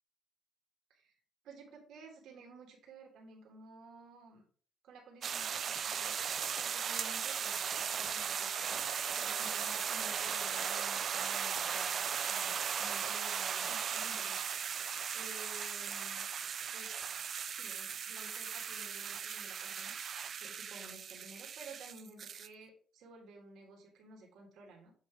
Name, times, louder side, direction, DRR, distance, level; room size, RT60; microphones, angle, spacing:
voice 1, 1.4-4.5 4.8-6.2 6.6-8.8 9.1-14.4 15.1-16.2 16.7-17.1 17.5-20.0 20.4-24.9, right 2 dB, 80° right, 0 dB, 1.6 m, -53 dB
sound 1, 5.2-22.5, right 7 dB, 55° right, 0.3 m, -37 dB
7.4 x 2.7 x 4.8 m, 0.43 s
cardioid pair, 90°, 0 cm